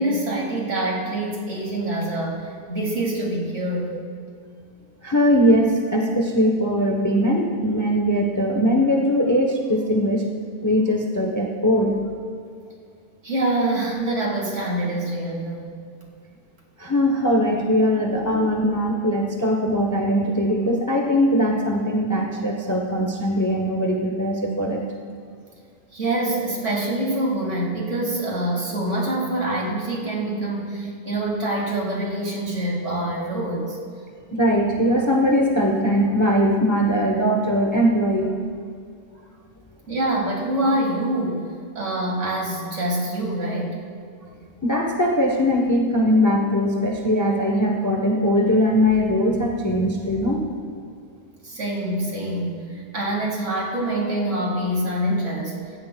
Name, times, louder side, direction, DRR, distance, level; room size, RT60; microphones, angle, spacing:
voice 1, 0.0-3.9 13.2-15.7 25.9-33.8 39.9-41.4 41.8-43.8 51.4-55.6, right 1 dB, 45° right, -1 dB, 2.2 m, -25 dB
voice 2, 5.0-10.2 10.6-12.1 16.8-24.8 34.3-38.3 44.6-50.4, equal, 25° left, 1 dB, 0.4 m, -20 dB
16.5 x 15.0 x 2.2 m, 2.3 s
omnidirectional pair, 1.8 m